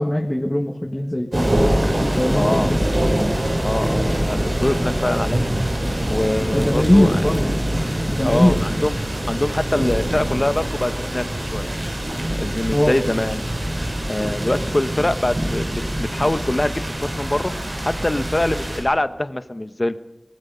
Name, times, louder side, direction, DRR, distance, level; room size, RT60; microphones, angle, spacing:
voice 1, 0.0-1.5 2.0-2.8 6.5-7.6 8.1-8.6 12.7-13.0, left 1 dB, 20° left, 3 dB, 1.6 m, -20 dB
sound 1, 1.3-18.8, right 1 dB, 85° right, 7.8 m, -24 dB
voice 2, 2.3-2.8 3.6-5.5 6.1-7.2 8.2-9.0 9.3-11.7 12.3-13.5 14.1-16.8 17.1-17.5 17.8-20.0, left 1 dB, 40° left, 11 dB, 1.0 m, -24 dB
24.5 x 19.0 x 5.6 m, 0.95 s
wide cardioid pair, 45°, 0 cm